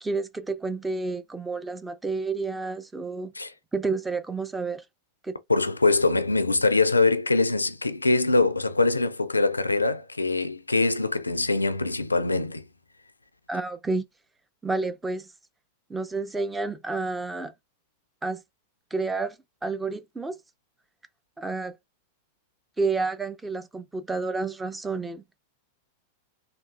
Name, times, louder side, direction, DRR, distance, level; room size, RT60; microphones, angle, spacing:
voice 1, 0.0-3.3 3.7-4.8 5.2-5.4 13.5-14.0 14.6-15.3 15.9-17.5 18.2-18.4 18.9-20.4 21.4-21.8 22.8-25.2, right 3 dB, 10° right, 0.4 m, -30 dB
voice 2, 5.5-12.6, left 3 dB, 80° left, 0.3 m, -23 dB
3.5 x 2.5 x 2.3 m
figure-of-eight pair, 90°, 0 cm